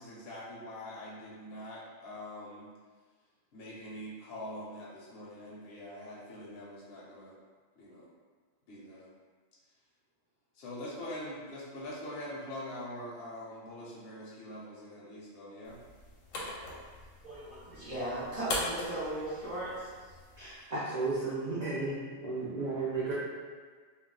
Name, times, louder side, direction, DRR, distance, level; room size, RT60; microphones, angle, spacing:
voice 1, 0.0-2.7 3.5-7.3 7.8-8.1 8.7-9.1 10.5-15.8, left 1 dB, 60° left, -6 dB, 0.8 m, -44 dB
sound 1, 15.7-20.7, left 2 dB, 80° left, 1.0 m, -41 dB
voice 2, 17.2-19.9, right 1 dB, 30° right, -10 dB, 1.0 m, -37 dB
voice 3, 20.4-23.1, right 3 dB, 55° right, -8 dB, 0.4 m, -34 dB
2.3 x 2.2 x 3.6 m, 1.5 s
omnidirectional pair, 1.3 m